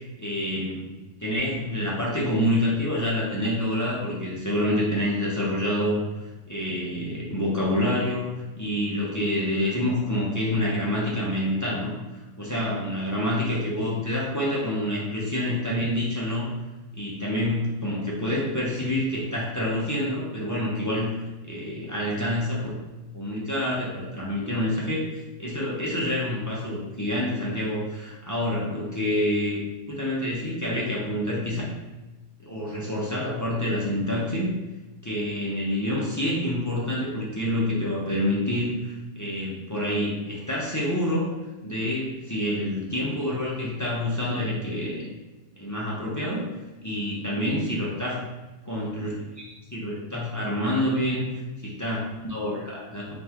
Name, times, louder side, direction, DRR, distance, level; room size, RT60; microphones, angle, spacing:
voice 1, 0.2-6.0 6.5-11.9 12.4-16.5 16.9-21.2 21.4-22.7 23.1-29.6 29.9-31.8 32.4-34.5 35.0-41.4 41.6-45.0 45.6-46.4 46.8-48.2 48.6-51.3 51.6-53.1, left 1 dB, 20° left, -6 dB, 0.5 m, -27 dB
4.0 x 3.4 x 2.9 m, 1.1 s
omnidirectional pair, 1.4 m